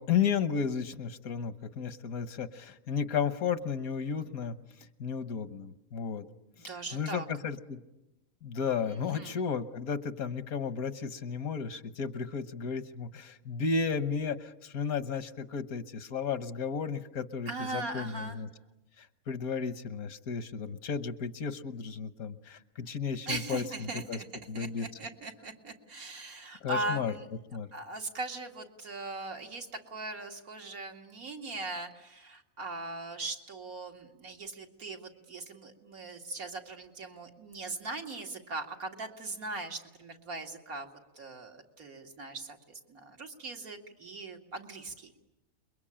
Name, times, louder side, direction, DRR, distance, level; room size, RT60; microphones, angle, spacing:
voice 1, 0.0-4.6 5.0-6.3 6.6-7.8 8.4-18.5 19.0-24.2 24.5-24.9 26.6-27.1 27.5-27.7, left 6 dB, 85° left, 12 dB, 1.6 m, -33 dB
voice 2, 6.6-7.3 8.9-9.4 17.5-18.4 23.3-24.3 24.5-27.3 27.7-40.9 41.2-45.1, right 2 dB, 85° right, 3 dB, 2.7 m, -40 dB
28.5 x 22.5 x 8.8 m, 0.95 s
omnidirectional pair, 1.5 m